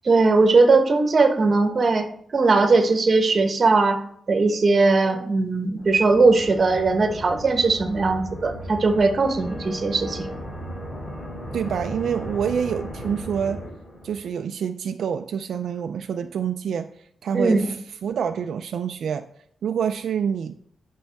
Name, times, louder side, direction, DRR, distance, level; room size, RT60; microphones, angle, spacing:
voice 1, 0.0-2.1 2.3-4.0 4.3-10.3 17.3-17.7, right 3 dB, 40° right, 5 dB, 1.1 m, -19 dB
sound 1, 5.8-14.3, equal, 50° left, 3.5 m, -36 dB
voice 2, 11.5-13.6 14.0-16.9 17.2-19.3 19.6-20.5, right 7 dB, 80° right, 7 dB, 0.4 m, -27 dB
10.5 x 5.5 x 3.4 m, 0.66 s
wide cardioid pair, 135°, 0 cm